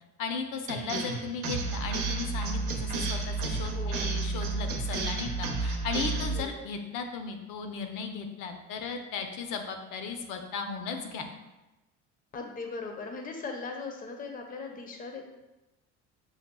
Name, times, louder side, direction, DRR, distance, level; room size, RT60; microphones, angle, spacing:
voice 1, 0.2-11.2, left 5 dB, 60° left, 5 dB, 0.7 m, -36 dB
sound 1, 0.7-6.4, right 3 dB, 80° right, 0.7 m, -31 dB
voice 2, 3.7-4.1 6.3-6.5 12.3-15.2, left 4 dB, 25° left, 3 dB, 0.6 m, -39 dB
6.3 x 2.3 x 2.2 m, 1.0 s
supercardioid pair, 90°, 36 cm